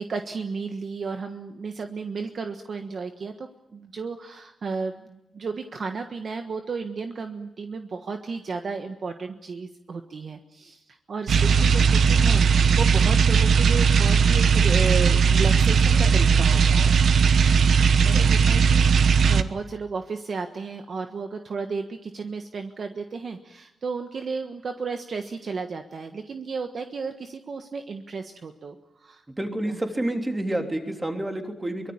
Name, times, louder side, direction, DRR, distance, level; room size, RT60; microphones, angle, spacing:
voice 1, 0.0-10.8 11.1-16.9 18.0-29.2 29.7-29.8, right 4 dB, 45° right, 6 dB, 1.4 m, -33 dB
sound 1, 11.3-19.4, right 6 dB, 65° right, 1.2 m, -18 dB
voice 2, 29.4-31.9, right 1 dB, 15° right, 4 dB, 3.2 m, -29 dB
24.0 x 22.5 x 8.8 m, 0.94 s
wide cardioid pair, 150°, 0 cm